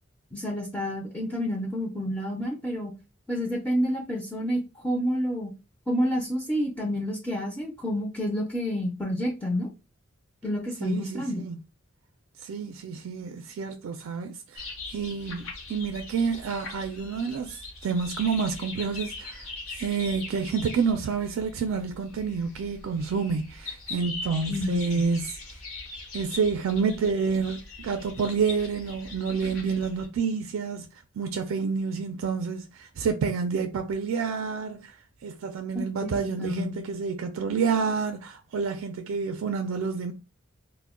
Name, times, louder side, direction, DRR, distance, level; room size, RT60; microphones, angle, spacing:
voice 1, 0.3-2.9 3.3-5.5 5.9-9.7 10.4-11.4 24.5-25.0 36.0-36.8, equal, 10° left, 0.4 m, -29 dB
voice 2, 10.8-11.6 12.4-25.4 26.1-30.9 31.2-34.9 35.2-40.1, right 5 dB, 75° right, 0.3 m, -29 dB
sound 1, 14.5-30.1, left 3 dB, 85° left, 0.9 m, -41 dB
2.1 x 2.1 x 3.6 m
head